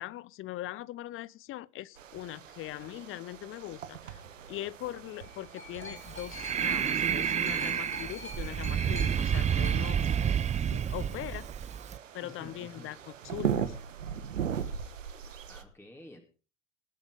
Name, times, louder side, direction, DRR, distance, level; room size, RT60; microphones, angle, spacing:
voice 1, 0.0-4.2 4.5-10.0 10.7-11.5 12.1-13.8, left 15 dB, 35° left, 0.7 m, -41 dB
sound 1, 2.0-15.6, right 8 dB, 75° right, 1.4 m, -40 dB
sound 2, 4.9-10.9 11.8-11.9, left 2 dB, 85° left, 5.4 m, -46 dB
Breathing, 6.0-12.0, right 8 dB, 20° right, 0.6 m, -30 dB
voice 2, 12.2-12.9 15.3-16.2, left 1 dB, 5° left, 3.2 m, -51 dB
20.0 x 8.9 x 5.1 m
figure-of-eight pair, 70°, 39 cm